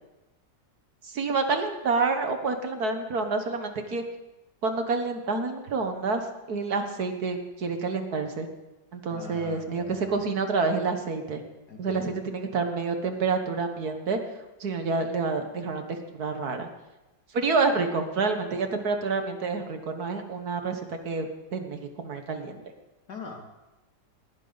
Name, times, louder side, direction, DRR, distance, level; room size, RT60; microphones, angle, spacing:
voice 1, 1.0-4.0 4.6-8.5 8.9-11.4 11.8-14.2 14.6-16.7 17.3-22.6, right 4 dB, 60° right, 6 dB, 1.8 m, -28 dB
voice 2, 9.1-10.2 11.7-12.2 23.1-23.5, left 3 dB, 60° left, 1 dB, 2.9 m, -42 dB
19.5 x 15.5 x 4.0 m, 1.0 s
omnidirectional pair, 1.9 m